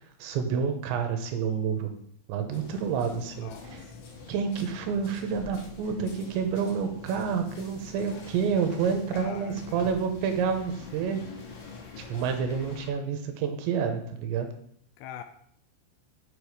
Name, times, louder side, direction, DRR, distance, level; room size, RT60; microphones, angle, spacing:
voice 1, 0.2-1.9 2.3-3.8 4.3-11.2 12.0-14.5, right 6 dB, 85° right, 6 dB, 3.2 m, -29 dB
sound 1, 2.5-12.9, left 4 dB, 60° left, 2.1 m, -45 dB
voice 2, 3.3-4.0 9.1-10.0 15.0-15.2, left 9 dB, 85° left, 8 dB, 2.6 m, -43 dB
7.2 x 6.7 x 4.8 m, 0.65 s
omnidirectional pair, 5.3 m